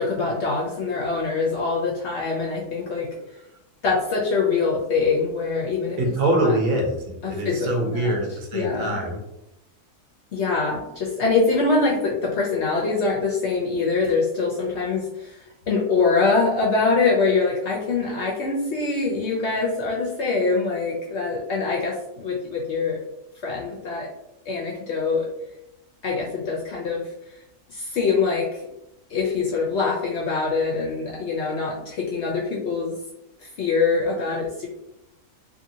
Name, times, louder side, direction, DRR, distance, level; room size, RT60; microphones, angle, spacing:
voice 1, 0.0-3.1 3.8-6.0 6.4-6.5 7.2-8.2 8.5-9.0 10.3-23.0 23.4-24.1 24.5-25.3 26.0-27.0 27.7-28.6 29.1-32.9 33.4-34.7, left 4 dB, 65° left, -3 dB, 0.7 m, -24 dB
voice 2, 6.0-9.2, right 1 dB, 65° right, 0 dB, 1.0 m, -24 dB
2.7 x 2.7 x 2.7 m, 0.87 s
omnidirectional pair, 1.6 m